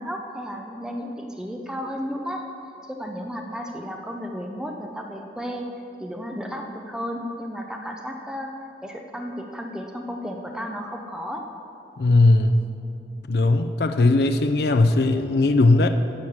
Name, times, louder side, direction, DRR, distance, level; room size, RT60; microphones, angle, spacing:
voice 1, 0.0-2.5 2.9-5.7 6.0-8.5 8.8-11.5, equal, 5° right, 2 dB, 0.6 m, -33 dB
voice 2, 12.0-12.7 13.3-15.9, left 2 dB, 60° left, 7 dB, 0.5 m, -18 dB
10.5 x 6.5 x 7.3 m, 2.7 s
head